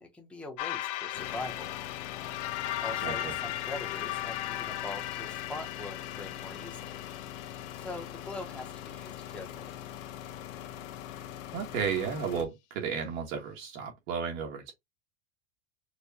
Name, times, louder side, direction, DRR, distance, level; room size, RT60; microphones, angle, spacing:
voice 1, 0.0-1.7 2.8-7.0 7.7-9.7, left 2 dB, 5° left, 0.7 m, -42 dB
sound 1, 0.6-9.0, left 14 dB, 45° left, 0.6 m, -37 dB
sound 2, 1.1-12.4, left 11 dB, 80° left, 1.0 m, -43 dB
voice 2, 3.0-3.3 11.5-14.7, right 6 dB, 80° right, 1.4 m, -33 dB
4.6 x 2.2 x 2.7 m
supercardioid pair, 155°, 39 cm